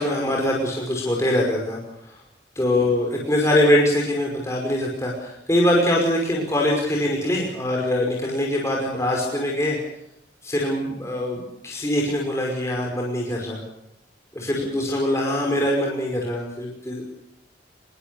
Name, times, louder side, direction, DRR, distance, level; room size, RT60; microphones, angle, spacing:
voice 1, 0.0-2.2 2.6-9.8 10.4-13.6 14.3-17.0, left 1 dB, 15° left, -1 dB, 5.6 m, -23 dB
26.0 x 23.0 x 7.0 m, 0.79 s
head